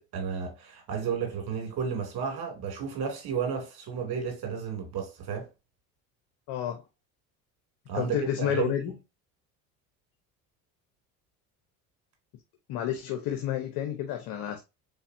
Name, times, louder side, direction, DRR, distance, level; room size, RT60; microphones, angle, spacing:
voice 1, 0.0-5.5 7.9-8.9, right 6 dB, 55° right, 2.6 m, -32 dB
voice 2, 6.5-6.8 7.9-8.9 12.7-14.6, left 10 dB, 65° left, 1.0 m, -30 dB
4.0 x 3.7 x 2.6 m
hypercardioid pair, 70°, 45 cm